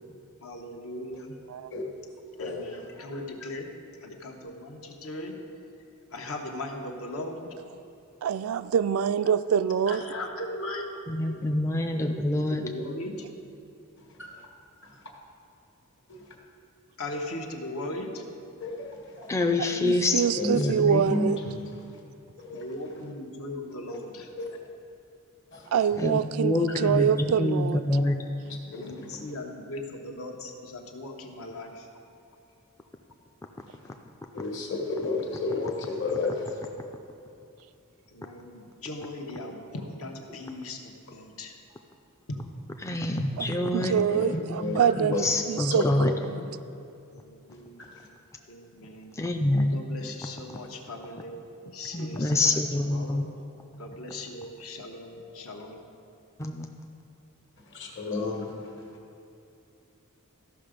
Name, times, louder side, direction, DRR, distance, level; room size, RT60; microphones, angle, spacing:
voice 1, 0.1-1.4 2.4-3.7 4.0-5.4 6.1-7.5 9.9-11.3 11.9-13.2 17.0-18.2 22.5-24.3 28.6-31.9 38.1-41.6 42.3-42.4 43.1-43.3 46.8-47.9 48.5-49.1 49.7-51.4 51.7-52.6 52.9-53.2 53.8-55.9, left 1 dB, 75° left, 2 dB, 1.1 m, -38 dB
voice 2, 2.4-2.8 14.1-14.4 14.8-14.9 16.1-16.2 17.1-17.2 18.6-19.3 20.3-21.4 22.4-22.6 23.9-24.0 24.4-24.6 25.5-26.0 28.7-29.3 33.8-33.9 34.3-36.6 44.1-45.2 45.7-46.1 47.8-48.1 57.7-58.9, left 3 dB, 55° left, 1 dB, 1.5 m, -33 dB
voice 3, 8.2-10.0 19.6-21.4 25.7-27.8 43.7-45.8 46.3-46.4, right 7 dB, 70° right, 13 dB, 0.3 m, -25 dB
voice 4, 11.1-12.7 19.3-20.3 20.5-21.1 26.0-28.2 42.8-46.1 49.1-49.8 51.9-53.3 56.4-56.9, left 2 dB, 15° left, 4 dB, 0.4 m, -27 dB
14.0 x 5.9 x 5.1 m, 2.6 s
head